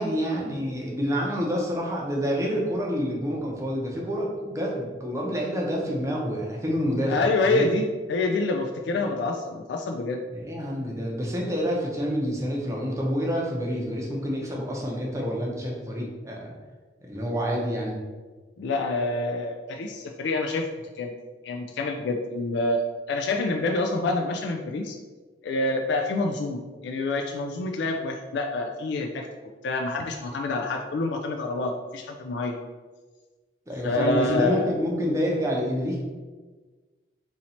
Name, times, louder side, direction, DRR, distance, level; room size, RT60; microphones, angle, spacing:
voice 1, 0.0-7.6 10.3-16.5 17.0-18.0 33.7-36.0, equal, 15° right, -2 dB, 0.6 m, -28 dB
voice 2, 7.1-10.2 18.6-20.7 21.0-21.1 21.4-22.8 23.1-25.0 25.4-29.3 29.6-32.5 33.8-34.7, left 2 dB, 75° left, 3 dB, 0.3 m, -27 dB
2.9 x 2.7 x 4.1 m, 1.4 s
head